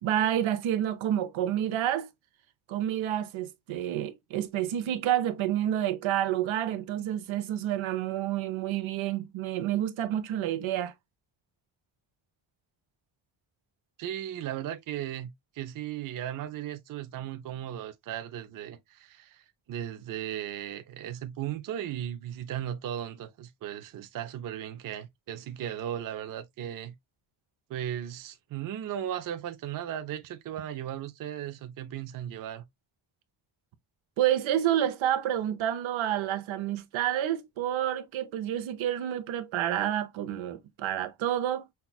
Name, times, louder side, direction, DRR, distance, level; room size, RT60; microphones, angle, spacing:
voice 1, 0.0-2.1 2.7-10.9 34.2-41.7, right 11 dB, 75° right, 0.8 m, -29 dB
voice 2, 14.0-26.9 27.7-32.6, right 10 dB, 45° right, 0.5 m, -36 dB
5.6 x 2.3 x 2.2 m
cardioid pair, 145°, 47 cm